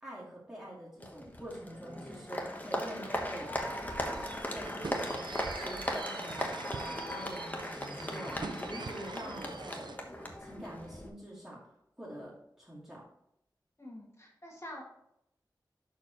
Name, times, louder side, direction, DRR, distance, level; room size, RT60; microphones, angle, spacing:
voice 1, 0.0-3.5 4.5-13.0, right 1 dB, 5° right, -6 dB, 2.1 m, -46 dB
Applause, 1.0-11.1, left 1 dB, 20° left, 1.2 m, -38 dB
sound 1, 4.1-10.0, right 4 dB, 75° right, 0.5 m, -44 dB
voice 2, 13.8-14.8, left 1 dB, 40° left, -2 dB, 2.1 m, -46 dB
11.0 x 4.6 x 3.1 m, 0.78 s
wide cardioid pair, 70°, 8 cm